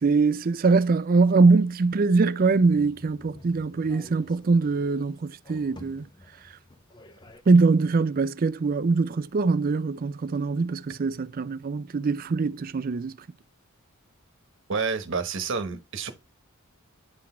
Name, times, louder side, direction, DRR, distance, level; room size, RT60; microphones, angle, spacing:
voice 1, 0.0-6.1 7.5-13.2, right 4 dB, 40° right, 0.4 m, -22 dB
sound 1, 2.4-7.4, left 1 dB, 20° left, 0.6 m, -50 dB
voice 2, 14.7-16.1, right 5 dB, 60° right, 1.0 m, -29 dB
9.7 x 4.0 x 4.3 m
head